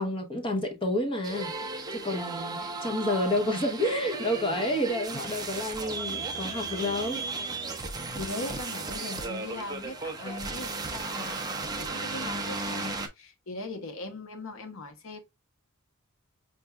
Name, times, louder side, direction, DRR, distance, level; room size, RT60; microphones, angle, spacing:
voice 1, 0.0-1.5 1.9-7.2, left 1 dB, 25° left, 0.8 m, -29 dB
sound 1, 1.2-13.1, right 3 dB, 20° right, 0.5 m, -35 dB
voice 2, 8.1-15.2, left 2 dB, 65° left, 0.9 m, -40 dB
5.7 x 2.6 x 2.2 m
head